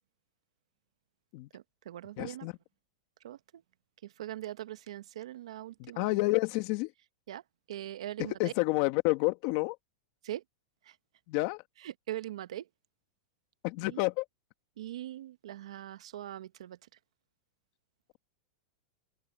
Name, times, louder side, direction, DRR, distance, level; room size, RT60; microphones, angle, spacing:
voice 1, 1.5-2.5 3.2-3.4 4.0-6.1 7.3-7.4 7.7-8.5 10.2-10.4 10.9-11.0 11.8-12.7 13.8-14.0 14.8-16.8, right 13 dB, 85° right, 1.2 m, -41 dB
voice 2, 2.2-2.5 5.8-6.9 8.2-9.8 11.3-11.6 13.6-14.3, left 22 dB, 45° left, 1.9 m, -29 dB
open air
supercardioid pair, 160°, 3 cm